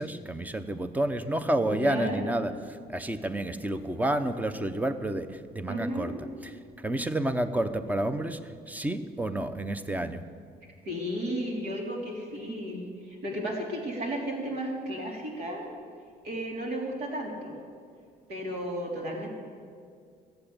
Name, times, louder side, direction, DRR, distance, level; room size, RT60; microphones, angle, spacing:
voice 1, 0.0-2.5 2.9-6.1 6.4-6.5 6.8-8.4 8.7-10.2, right 1 dB, 10° right, 11 dB, 0.7 m, -29 dB
voice 2, 1.7-2.3 5.7-6.2 10.8-15.7 16.2-17.5 18.3-19.3, equal, 75° right, -1 dB, 3.4 m, -33 dB
14.5 x 8.0 x 8.7 m, 2.2 s
cardioid pair, 110°, 17 cm